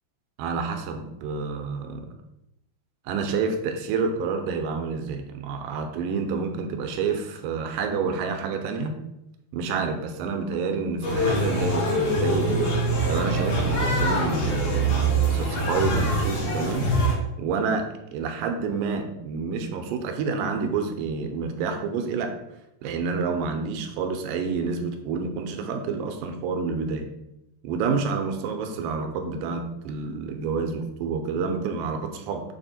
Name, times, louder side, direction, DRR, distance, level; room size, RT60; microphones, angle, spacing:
voice 1, 0.4-2.1 3.1-8.9 9.5-12.6 13.1-16.9 17.4-17.8 18.1-22.3 22.8-27.0 27.6-32.4, right 5 dB, 85° right, 5 dB, 2.4 m, -28 dB
sound 1, 11.0-17.1, right 1 dB, 80° left, 3.4 m, -24 dB
6.5 x 3.4 x 4.2 m, 0.86 s
omnidirectional pair, 3.9 m